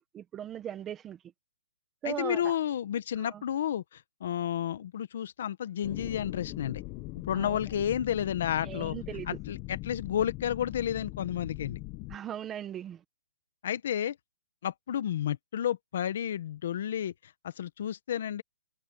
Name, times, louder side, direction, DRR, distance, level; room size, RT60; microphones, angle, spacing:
voice 1, 0.1-1.2 2.0-2.5 3.2-3.3 7.3-7.6 8.6-9.4 12.1-13.0, right 10 dB, 15° right, 1.4 m, -38 dB
voice 2, 2.0-6.8 7.2-9.0 9.2-11.8 13.6-14.2 14.6-18.4, left 10 dB, 50° left, 1.4 m, -31 dB
sound 1, 5.8-12.2, left 20 dB, 20° left, 1.2 m, -41 dB
hypercardioid pair, 170°, 0 cm